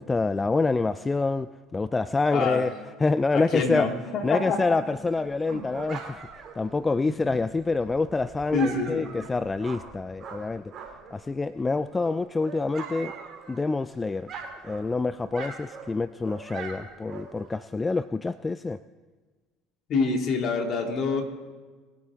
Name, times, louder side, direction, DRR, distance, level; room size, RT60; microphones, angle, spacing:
voice 1, 0.0-2.7 3.0-3.9 4.2-10.6 11.1-13.1 13.5-14.3 14.6-18.8, left 3 dB, 20° left, 15 dB, 0.3 m, -27 dB
voice 2, 2.3-2.7 3.3-4.7 5.5-5.6 7.0-7.1 8.5-9.1 19.9-21.2, left 4 dB, 50° left, 3 dB, 2.3 m, -26 dB
Dog, 4.9-11.2 11.6-13.9 14.1-17.6, right 5 dB, 45° right, 2.7 m, -42 dB
21.5 x 8.9 x 3.6 m, 1.4 s
hypercardioid pair, 70°, 0 cm